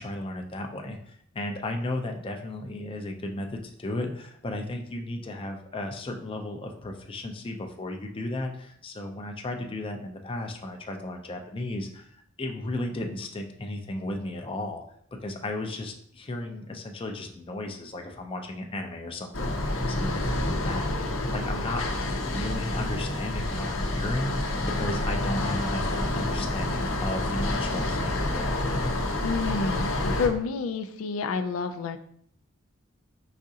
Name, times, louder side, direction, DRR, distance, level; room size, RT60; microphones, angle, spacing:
voice 1, 0.0-14.8 15.2-28.5, left 1 dB, 25° left, 3 dB, 0.5 m, -34 dB
sound 1, 19.3-30.3, left 1 dB, 70° left, 0.7 m, -28 dB
voice 2, 29.2-32.0, left 5 dB, 90° left, 7 dB, 0.4 m, -29 dB
4.9 x 3.6 x 2.7 m, 0.65 s
head